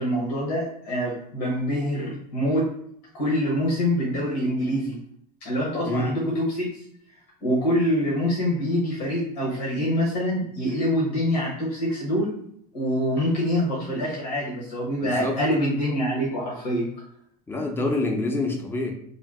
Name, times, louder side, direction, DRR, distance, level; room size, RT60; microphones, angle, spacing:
voice 1, 0.0-2.7 3.1-4.9 5.4-6.8 7.4-12.3 12.7-16.9, equal, 80° left, -4 dB, 1.0 m, -25 dB
voice 2, 15.0-15.4 17.5-18.9, left 2 dB, 10° left, 2 dB, 0.6 m, -26 dB
2.7 x 2.2 x 3.5 m, 0.67 s
hypercardioid pair, 90°, 20 cm